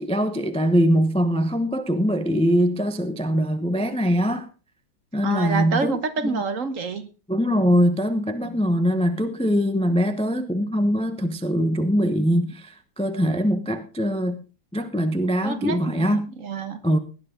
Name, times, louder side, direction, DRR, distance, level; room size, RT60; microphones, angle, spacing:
voice 1, 0.0-4.5 5.1-6.4 7.3-14.4 14.7-16.2 16.8-17.0, equal, 10° left, 0.3 m, -22 dB
voice 2, 5.2-7.1 15.4-16.8, right 4 dB, 50° right, 1.4 m, -27 dB
18.0 x 10.5 x 3.8 m
omnidirectional pair, 2.1 m